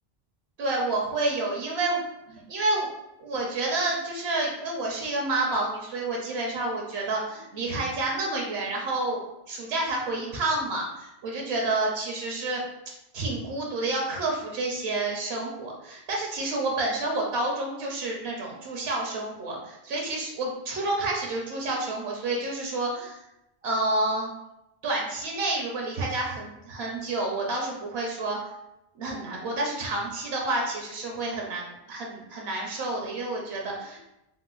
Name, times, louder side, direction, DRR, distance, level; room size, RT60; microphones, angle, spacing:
voice 1, 0.6-2.0 2.3-2.9 3.2-9.2 9.5-12.6 13.1-23.2 23.6-24.3 24.8-28.4 29.0-34.0, right 2 dB, 80° right, -1 dB, 0.9 m, -29 dB
4.0 x 2.1 x 2.3 m, 0.88 s
omnidirectional pair, 1.1 m